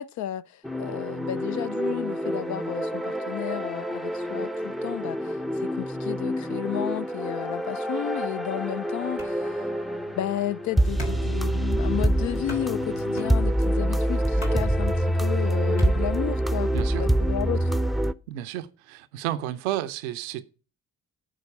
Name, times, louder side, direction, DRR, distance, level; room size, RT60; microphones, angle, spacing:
voice 1, 0.0-9.6 10.2-17.7, left 13 dB, 55° left, 0.4 m, -33 dB
sound 1, 0.6-18.1, right 1 dB, ahead, 0.6 m, -26 dB
sound 2, 9.2-16.6, left 1 dB, 85° left, 1.7 m, -41 dB
voice 2, 16.7-17.0 18.3-20.4, right 13 dB, 85° right, 0.6 m, -31 dB
11.0 x 4.6 x 7.0 m
hypercardioid pair, 40°, 34 cm